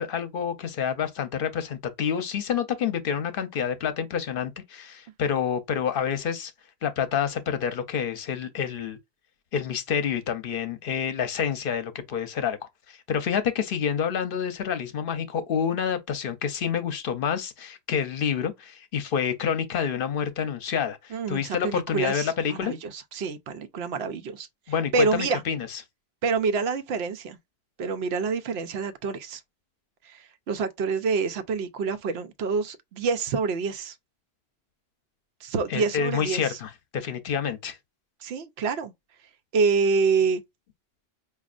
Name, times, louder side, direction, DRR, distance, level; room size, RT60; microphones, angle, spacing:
voice 1, 0.0-6.5 6.8-9.0 9.5-12.6 12.9-22.7 24.7-25.8 35.7-37.8, left 7 dB, 65° left, 0.8 m, -28 dB
voice 2, 21.1-24.5 24.9-25.4 26.2-27.4 27.8-29.4 30.1-30.2 30.5-33.9 35.4-36.6 38.2-38.9 39.5-40.4, right 5 dB, 90° right, 0.9 m, -27 dB
5.0 x 2.4 x 2.4 m
omnidirectional pair, 1.0 m